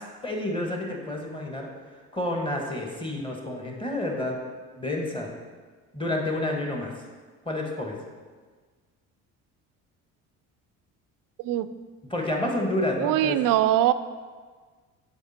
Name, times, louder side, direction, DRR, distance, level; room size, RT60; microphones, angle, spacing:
voice 1, 0.0-1.7 2.1-4.4 4.8-5.3 5.9-6.9 7.4-8.0 12.1-13.4, left 1 dB, 15° left, 0 dB, 1.6 m, -29 dB
voice 2, 13.0-13.9, right 13 dB, 60° right, 13 dB, 0.5 m, -22 dB
6.9 x 4.9 x 4.3 m, 1.5 s
hypercardioid pair, 65°, 38 cm